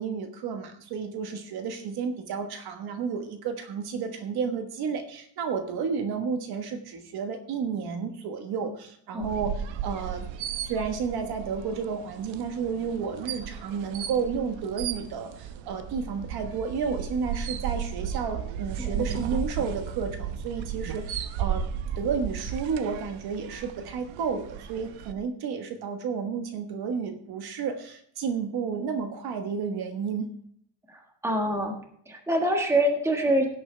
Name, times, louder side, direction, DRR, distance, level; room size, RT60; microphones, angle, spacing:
voice 1, 0.0-10.3 10.6-21.6 22.0-30.3, right 6 dB, 50° right, 6 dB, 1.3 m, -31 dB
sound 1, 9.2-25.1, right 8 dB, 65° right, 0.9 m, -35 dB
voice 2, 18.8-19.2 30.9-31.7 32.1-33.5, right 1 dB, 5° right, 2 dB, 1.4 m, -26 dB
16.5 x 8.5 x 3.3 m, 0.65 s
cardioid pair, 175°, 49 cm